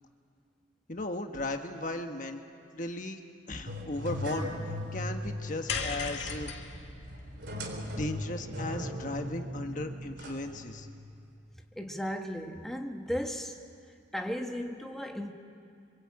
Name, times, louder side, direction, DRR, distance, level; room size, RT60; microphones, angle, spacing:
voice 1, 0.9-2.4 2.7-3.2 3.5-4.5 4.9-6.5 8.0-10.9, left 2 dB, 40° left, 5 dB, 1.3 m, -36 dB
sound 1, 3.7-11.2, equal, 60° right, 4.0 m, -39 dB
sound 2, 5.7-10.1, left 4 dB, 60° left, 2.0 m, -39 dB
voice 2, 11.8-13.6 14.1-15.3, equal, ahead, 2 dB, 1.4 m, -35 dB
27.0 x 25.5 x 8.7 m, 2.4 s
head